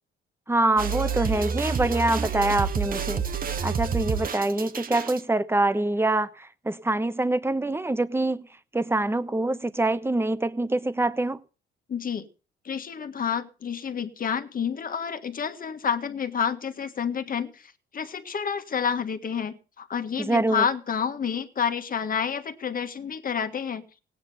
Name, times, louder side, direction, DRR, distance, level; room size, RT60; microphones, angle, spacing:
voice 1, 0.5-3.2 3.6-8.5 8.7-11.4 20.2-20.7, right 2 dB, 10° right, 1.1 m, -25 dB
sound 1, 0.8-5.2, right 6 dB, 45° right, 1.3 m, -28 dB
voice 2, 11.9-12.3 12.6-23.8, left 7 dB, 45° left, 1.7 m, -29 dB
17.5 x 9.4 x 5.7 m
cardioid pair, 90°, 20 cm